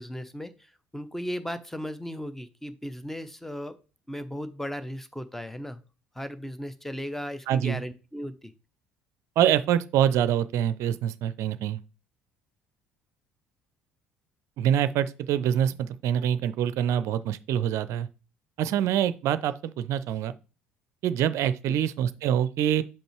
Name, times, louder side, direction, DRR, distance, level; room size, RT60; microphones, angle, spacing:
voice 1, 0.0-3.7 4.1-5.8 6.1-8.5 21.7-21.8, equal, 5° left, 0.8 m, -36 dB
voice 2, 7.5-7.8 9.4-11.8 14.6-18.1 18.6-20.3 21.0-22.8, right 10 dB, 55° right, 0.5 m, -25 dB
5.6 x 5.3 x 4.4 m
figure-of-eight pair, 55°, 6 cm